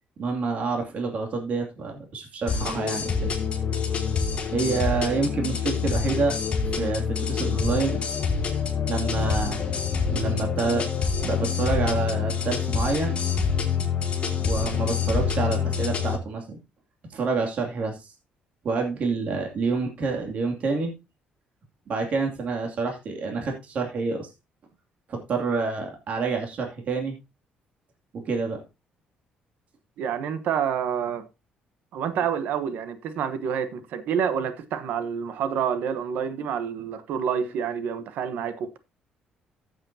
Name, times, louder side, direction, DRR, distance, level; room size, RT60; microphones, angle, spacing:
voice 1, 0.2-3.3 4.5-6.4 6.7-8.0 8.5-8.6 8.9-9.6 10.1-10.9 11.2-13.2 14.3-16.6 17.1-18.1 18.6-20.9 21.9-24.3 25.1-27.2 28.2-28.6, right 4 dB, 55° right, 2.6 m, -28 dB
sound 1, 2.5-16.2, left 6 dB, 40° left, 3.6 m, -26 dB
voice 2, 30.0-31.3 31.9-38.7, right 7 dB, 75° right, 1.1 m, -28 dB
14.5 x 7.9 x 2.8 m
cardioid pair, 110°, 3 cm